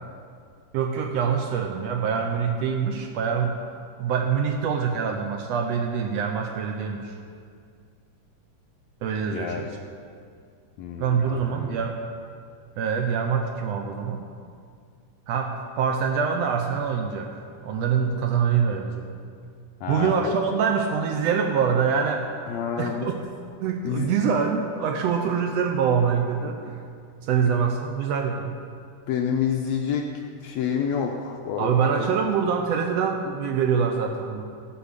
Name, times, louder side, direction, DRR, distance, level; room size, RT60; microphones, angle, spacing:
voice 1, 0.7-3.6 4.0-7.2 9.0-9.7 11.0-12.0 12.8-14.2 15.3-19.1 19.9-22.3 22.8-23.2 23.6-26.8 27.2-28.6 31.6-34.4, right 6 dB, 90° right, 3 dB, 1.4 m, -25 dB
voice 2, 9.3-9.7 10.8-11.8 19.8-20.3 22.5-23.1 23.8-24.1 29.1-30.1 30.4-32.1, left 7 dB, 80° left, 2 dB, 1.6 m, -28 dB
15.0 x 5.2 x 6.5 m, 2.3 s
omnidirectional pair, 3.7 m